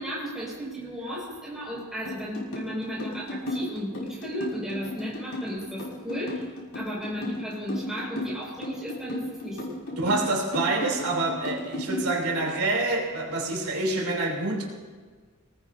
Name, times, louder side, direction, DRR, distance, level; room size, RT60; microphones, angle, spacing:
voice 1, 0.0-10.1, equal, ahead, -7 dB, 5.9 m, -35 dB
sound 1, 2.0-12.6, left 1 dB, 85° left, 5.6 m, -34 dB
voice 2, 10.0-14.7, right 2 dB, 90° right, -1 dB, 3.5 m, -27 dB
25.0 x 19.0 x 2.8 m, 1.5 s
head